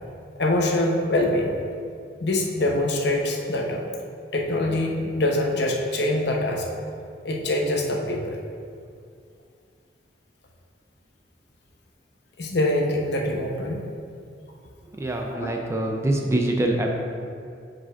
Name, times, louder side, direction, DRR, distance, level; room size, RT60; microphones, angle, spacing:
voice 1, 0.4-1.6 2.2-3.8 4.3-6.6 7.2-8.4 12.4-13.8 15.4-15.5, left 1 dB, 65° left, 0 dB, 0.8 m, -24 dB
voice 2, 15.0-16.9, right 1 dB, 15° right, 1 dB, 0.4 m, -24 dB
9.8 x 5.0 x 2.4 m, 2.4 s
head